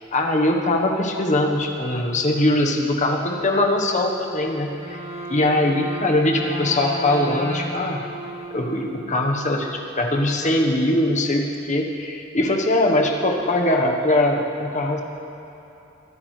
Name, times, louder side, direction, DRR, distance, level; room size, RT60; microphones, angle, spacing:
voice 1, 0.1-5.0 5.3-8.0 8.5-15.0, left 1 dB, 35° left, 1 dB, 1.2 m, -21 dB
Wind instrument woodwind instrument, 4.6-9.5, equal, 30° right, 1.6 m, -34 dB
22.5 x 10.5 x 3.3 m, 2.9 s
head